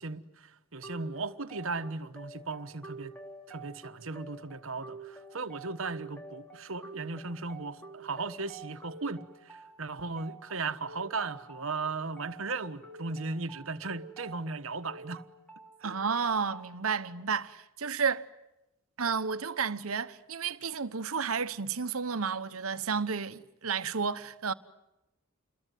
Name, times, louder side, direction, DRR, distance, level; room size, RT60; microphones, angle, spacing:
voice 1, 0.0-3.1 3.5-15.2 15.8-15.9, right 3 dB, 70° right, 1.3 m, -37 dB
sound 1, 0.8-16.8, right 4 dB, 5° left, 3.6 m, -49 dB
voice 2, 15.8-18.3 19.0-24.5, right 5 dB, 90° right, 1.1 m, -31 dB
28.5 x 22.0 x 9.3 m
head